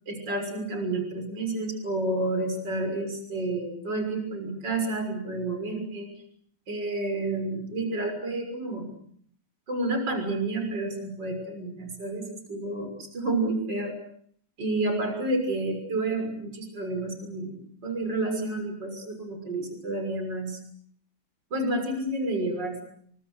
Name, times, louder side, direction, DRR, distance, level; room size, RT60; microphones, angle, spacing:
voice 1, 0.1-6.1 6.7-8.9 9.7-14.0 14.6-20.6 21.5-22.8, right 2 dB, 55° right, 5 dB, 7.0 m, -30 dB
30.0 x 24.5 x 6.6 m, 0.62 s
omnidirectional pair, 2.3 m